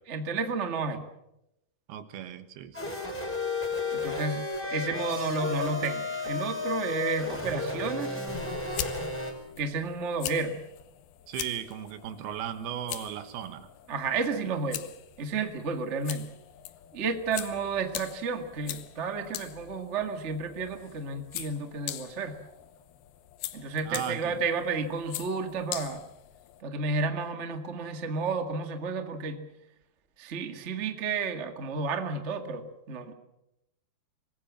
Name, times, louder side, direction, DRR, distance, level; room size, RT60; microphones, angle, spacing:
voice 1, 0.1-1.1 3.9-8.2 9.6-10.6 13.9-14.9 15.2-16.3 16.9-22.4 23.5-26.1 26.6-29.4 30.2-33.1, right 4 dB, 45° right, 6 dB, 0.8 m, -31 dB
voice 2, 1.9-3.0 11.3-13.7 23.9-24.4, right 10 dB, 75° right, 11 dB, 3.1 m, -36 dB
sound 1, 2.7-9.3, left 3 dB, 5° left, 4.4 m, -33 dB
sound 2, 8.3-26.6, left 13 dB, 75° left, 2.7 m, -42 dB
25.0 x 20.0 x 7.5 m, 0.87 s
omnidirectional pair, 4.8 m